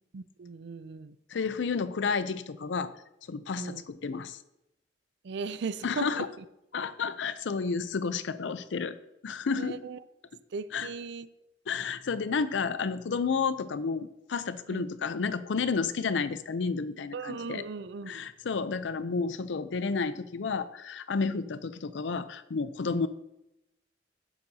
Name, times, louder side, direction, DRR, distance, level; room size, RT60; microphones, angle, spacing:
voice 1, 0.1-1.2 3.6-3.8 5.2-6.3 9.6-10.0 10.5-11.3 14.7-14.8 17.1-18.2, right 4 dB, 70° right, 0.4 m, -37 dB
voice 2, 1.3-2.9 3.3-4.4 5.8-6.3 6.7-9.0 9.2-9.8 10.7-10.9 11.7-17.6 18.1-23.1, left 5 dB, 80° left, 0.5 m, -31 dB
11.5 x 7.1 x 2.8 m
head